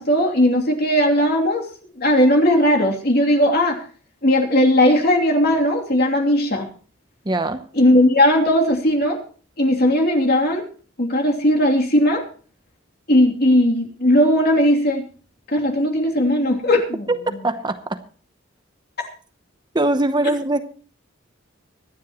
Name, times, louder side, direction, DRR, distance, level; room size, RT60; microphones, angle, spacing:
voice 1, 0.0-1.7 2.0-3.8 4.2-6.7 7.7-9.2 9.6-10.6 11.0-12.2 13.1-15.0 15.5-17.0, left 1 dB, 55° left, 3.0 m, -17 dB
voice 2, 7.2-7.7 17.1-18.0 19.7-20.7, right 2 dB, 20° right, 0.8 m, -22 dB
25.0 x 10.0 x 3.1 m
head